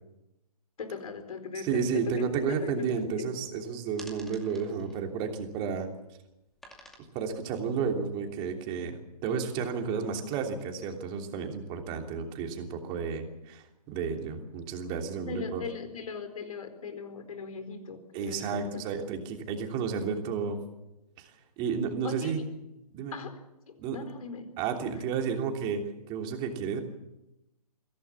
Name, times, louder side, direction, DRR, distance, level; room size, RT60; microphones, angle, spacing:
voice 1, 0.8-3.3 15.2-18.6 22.0-22.4 23.1-23.4 23.7-24.5, left 5 dB, 60° left, 7 dB, 4.4 m, -39 dB
voice 2, 1.6-5.9 7.1-15.6 18.1-20.6 21.2-22.4 22.9-23.1 23.8-24.0 24.6-26.8, right 6 dB, 25° right, 3 dB, 3.1 m, -32 dB
sound 1, 4.0-5.9 6.6-7.0, equal, ahead, 2.4 m, -51 dB
23.0 x 16.5 x 7.2 m, 0.93 s
hypercardioid pair, 140°, 20 cm